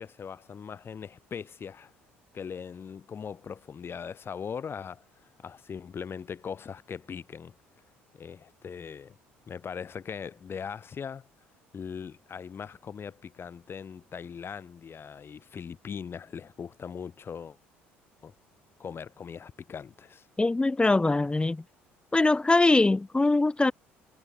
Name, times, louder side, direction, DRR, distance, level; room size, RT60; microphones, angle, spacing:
voice 1, 0.0-1.9 2.3-5.0 5.4-7.5 8.1-9.2 9.5-11.3 11.7-17.6 18.2-18.3 18.8-20.3, left 7 dB, 40° left, 7.3 m, -40 dB
voice 2, 20.4-21.6 22.1-23.7, left 2 dB, 15° left, 2.8 m, -22 dB
hypercardioid pair, 55°, 6 cm